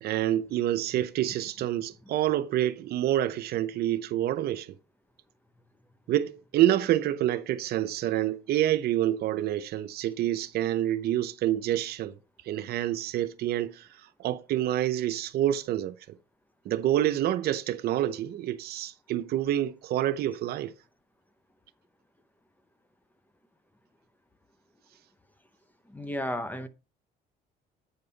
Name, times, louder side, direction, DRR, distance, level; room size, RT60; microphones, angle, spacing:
voice 1, 0.0-4.7 6.1-12.1 12.5-13.9 14.2-15.9 16.6-20.7, right 12 dB, 70° right, 0.7 m, -27 dB
voice 2, 25.9-26.7, left 1 dB, 10° left, 0.7 m, -33 dB
8.6 x 5.3 x 4.0 m
cardioid pair, 110°, 17 cm